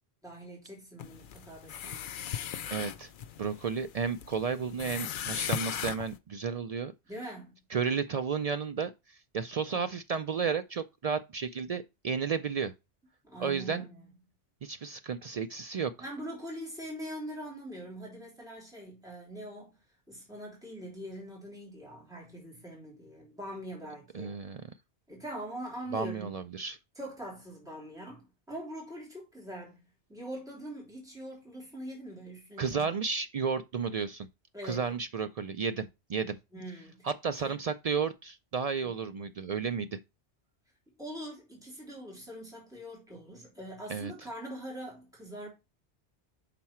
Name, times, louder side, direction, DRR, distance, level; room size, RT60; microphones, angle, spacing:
voice 1, 0.2-2.2 7.1-7.5 13.2-14.1 16.0-19.7 20.1-24.4 25.1-26.4 27.0-33.0 34.5-34.8 36.5-37.6 41.0-45.5, right 1 dB, 5° right, 3.3 m, -43 dB
sound 1, 1.0-6.2, left 9 dB, 60° left, 0.6 m, -38 dB
voice 2, 2.7-3.1 3.4-6.9 7.7-12.7 13.4-13.8 14.6-15.9 24.1-24.6 25.9-26.8 32.6-34.3 34.6-36.4 37.0-40.0 43.9-44.1, right 6 dB, 65° right, 0.3 m, -32 dB
5.9 x 4.7 x 4.3 m
omnidirectional pair, 1.2 m